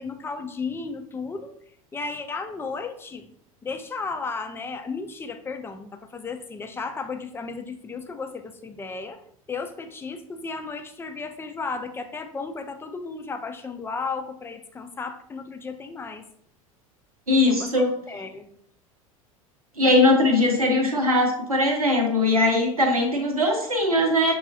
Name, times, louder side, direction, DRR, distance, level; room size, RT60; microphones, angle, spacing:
voice 1, 0.0-1.5 1.9-3.3 3.6-9.2 9.5-16.2 17.4-18.5, left 4 dB, 15° left, 6 dB, 0.5 m, -34 dB
voice 2, 17.3-17.9 19.8-24.3, left 2 dB, 85° right, 2 dB, 0.8 m, -20 dB
6.2 x 2.3 x 2.6 m, 0.65 s
figure-of-eight pair, 75°, 18 cm